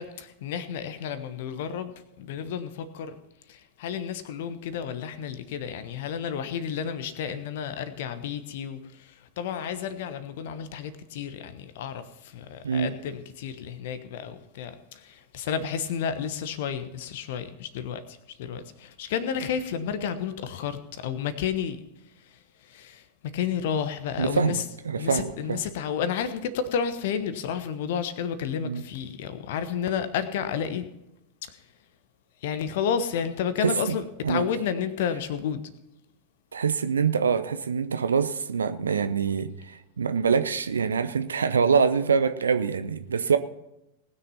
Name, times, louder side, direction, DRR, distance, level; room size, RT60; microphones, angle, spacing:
voice 1, 0.0-3.2 3.5-21.8 22.3-24.6 25.0-30.9 31.4-31.6 32.4-35.6, left 7 dB, 55° left, 1.2 m, -31 dB
voice 2, 24.2-25.6 28.6-28.8 33.6-33.9 34.2-34.4 36.5-43.4, right 6 dB, 70° right, 0.7 m, -25 dB
19.5 x 6.6 x 5.6 m
figure-of-eight pair, 90°, 0 cm